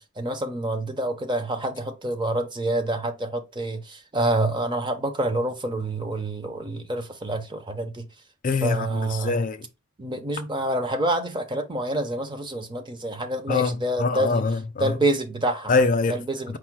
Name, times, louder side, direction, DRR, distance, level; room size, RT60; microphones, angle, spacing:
voice 1, 0.0-8.1 8.6-9.4 10.0-14.4 14.8-15.7 16.1-16.6, right 1 dB, 20° right, 0.5 m, -27 dB
voice 2, 8.4-9.7 13.5-14.9 15.7-16.2 16.5-16.6, left 3 dB, 35° left, 0.4 m, -24 dB
4.7 x 2.0 x 4.5 m
head